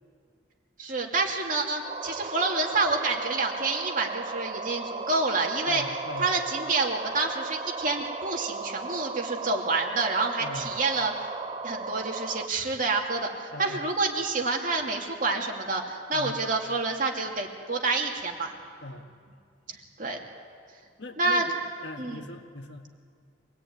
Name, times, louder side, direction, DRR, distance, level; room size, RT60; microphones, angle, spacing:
voice 1, 0.8-5.8 6.2-11.3 11.6-18.5 19.7-20.2 21.2-21.5 22.0-22.2, right 3 dB, 45° right, 1 dB, 2.6 m, -28 dB
sound 1, 1.8-12.5, right 3 dB, 25° right, 0.7 m, -36 dB
voice 2, 5.7-6.4 10.4-10.7 13.5-13.8 16.1-16.3 18.8-19.0 21.0-21.5 21.8-22.9, left 2 dB, 65° left, 5 dB, 1.8 m, -39 dB
25.0 x 18.5 x 9.5 m, 2.2 s
head